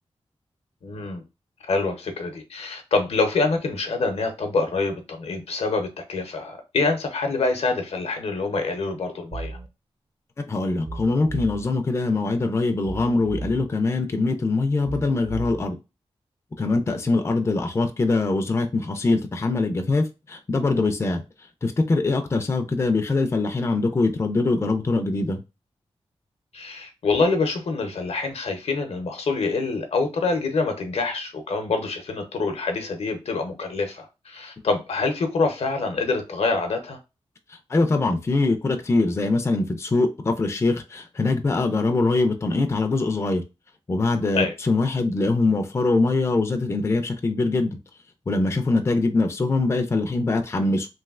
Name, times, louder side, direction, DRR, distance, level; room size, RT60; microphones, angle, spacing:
voice 1, 0.8-1.2 1.7-9.6 16.7-17.0 26.5-37.0 44.3-44.5, left 3 dB, 75° left, 0.7 m, -26 dB
sound 1, 9.3-9.7 10.9-11.7 12.9-13.7 14.9-15.7, right 3 dB, 40° right, 0.5 m, -35 dB
voice 2, 10.4-15.8 16.6-21.2 21.6-25.4 37.7-43.4 43.9-47.7 48.3-50.9, left 3 dB, 25° left, 0.4 m, -23 dB
3.1 x 2.6 x 2.4 m
wide cardioid pair, 105°, 11 cm